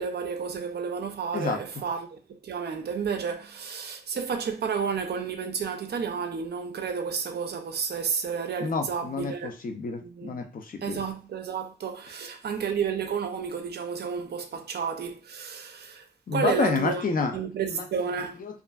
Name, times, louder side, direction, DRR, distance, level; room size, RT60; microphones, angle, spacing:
voice 1, 0.0-9.5 10.0-10.5 10.8-18.4, right 6 dB, 90° right, 0.5 m, -31 dB
voice 2, 8.6-11.0 16.3-17.3 17.7-17.8 18.4-18.6, left 4 dB, 60° left, 0.5 m, -29 dB
2.6 x 2.4 x 2.3 m
wide cardioid pair, 150°, 16 cm